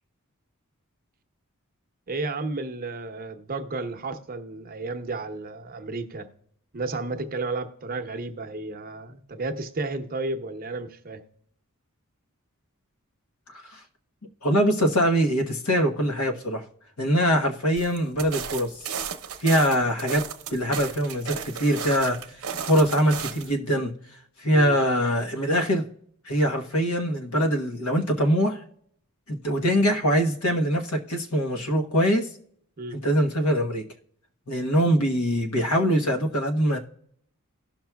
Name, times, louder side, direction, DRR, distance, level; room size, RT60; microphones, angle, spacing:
voice 1, 2.1-6.3 6.7-11.2 24.5-24.8 32.8-33.0, right 3 dB, 40° right, 0.8 m, -32 dB
voice 2, 14.4-16.6 17.0-18.7 19.4-20.2 20.5-22.2 22.7-23.9 24.4-25.8 26.3-28.6 29.3-32.3 33.0-33.8 34.5-36.8, equal, 75° left, 1.1 m, -23 dB
sound 1, 17.8-23.6, right 7 dB, 75° right, 0.8 m, -34 dB
18.0 x 6.0 x 2.3 m
head